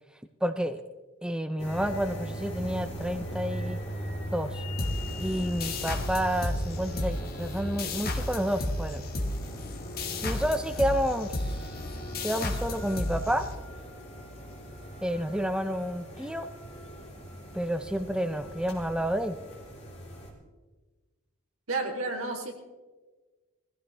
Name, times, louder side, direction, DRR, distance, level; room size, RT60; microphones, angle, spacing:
voice 1, 0.4-0.8 1.2-3.8 4.3-4.6 5.2-9.0 10.2-11.6 12.2-13.4 15.0-16.5 17.5-19.4, equal, 5° right, 8 dB, 0.5 m, -30 dB
sound 1, 1.6-20.3, equal, 30° left, 4.1 m, -39 dB
sound 2, 4.8-14.0, left 1 dB, 45° left, 1.8 m, -33 dB
voice 2, 21.7-22.5, right 3 dB, 80° right, 0 dB, 3.2 m, -31 dB
21.5 x 15.5 x 3.4 m, 1.3 s
head